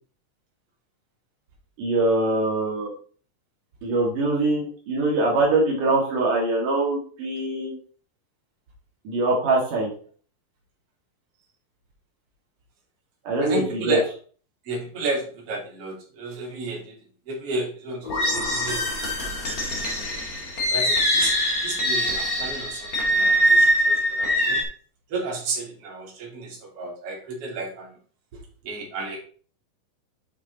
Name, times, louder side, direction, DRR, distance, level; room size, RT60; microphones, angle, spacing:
voice 1, 1.8-2.9 3.8-7.8 9.1-9.9 13.3-14.0, right 2 dB, 65° right, -2 dB, 3.4 m, -23 dB
voice 2, 13.4-14.0 14.6-17.0 17.3-18.9 19.2-19.6 20.7-21.3 21.6-24.6 25.1-27.9 28.6-29.2, right 2 dB, 45° right, -2 dB, 3.4 m, -32 dB
sound 1, 18.0-24.6, equal, 30° left, 2.1 m, -23 dB
8.5 x 6.4 x 4.0 m, 0.42 s
omnidirectional pair, 4.0 m